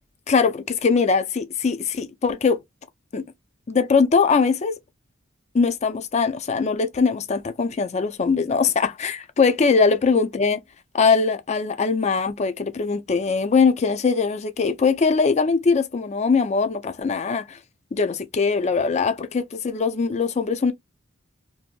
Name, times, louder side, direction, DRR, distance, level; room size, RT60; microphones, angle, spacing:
voice 1, 0.3-2.6 3.1-3.2 3.7-4.8 5.5-10.6 10.9-17.6 17.9-20.7, left 5 dB, 35° left, 0.4 m, -21 dB
2.7 x 2.5 x 2.2 m
head